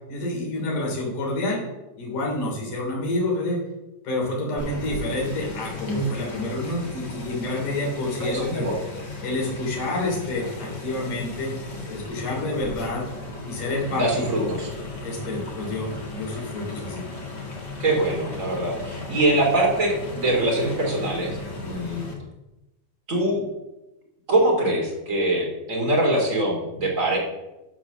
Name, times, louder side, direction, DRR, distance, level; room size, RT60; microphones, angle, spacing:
voice 1, 0.1-1.6 2.0-3.6 4.0-8.7 9.2-11.6 11.9-13.0 13.5-14.5 15.0-17.1, left 2 dB, 70° left, -2 dB, 4.6 m, -28 dB
sound 1, 4.6-22.1, left 2 dB, 35° left, 2.2 m, -36 dB
voice 2, 8.2-8.7 13.9-14.7 17.8-22.0 23.1-23.4 24.3-27.2, right 1 dB, 25° right, -2 dB, 3.0 m, -23 dB
13.0 x 4.9 x 6.7 m, 0.99 s
omnidirectional pair, 3.8 m